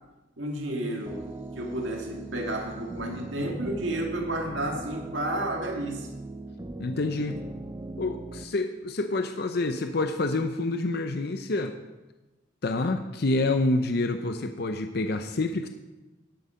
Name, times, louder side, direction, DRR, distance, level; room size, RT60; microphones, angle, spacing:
voice 1, 0.4-1.3 1.6-6.1, right 1 dB, 75° right, 2 dB, 2.0 m, -31 dB
sound 1, 1.1-8.4, right 2 dB, 20° right, 0.4 m, -40 dB
voice 2, 6.8-7.4 8.0-11.8 12.6-15.7, left 2 dB, 55° left, 7 dB, 0.6 m, -27 dB
10.5 x 8.5 x 5.1 m, 1.1 s
head